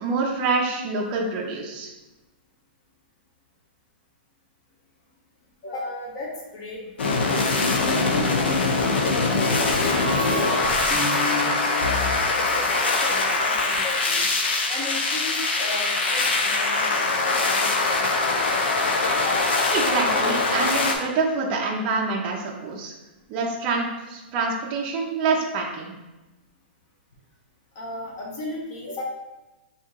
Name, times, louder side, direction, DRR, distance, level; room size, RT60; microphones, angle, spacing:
voice 1, 0.0-1.9 19.7-22.9 23.3-25.9, right 4 dB, 25° right, -2 dB, 0.5 m, -26 dB
voice 2, 5.6-7.3 7.7-10.5 10.9-14.3 14.7-18.5 19.2-19.4 27.7-29.1, left 2 dB, 35° left, -2 dB, 1.0 m, -36 dB
sound 1, 7.0-20.9, left 3 dB, 80° left, 0.7 m, -23 dB
sound 2, 7.9-8.7 9.7-13.0, left 1 dB, 10° left, 0.8 m, -30 dB
sound 3, 8.8-14.6, left 2 dB, 55° left, 1.3 m, -45 dB
3.5 x 2.8 x 4.5 m, 1.1 s
hypercardioid pair, 170°, 6 cm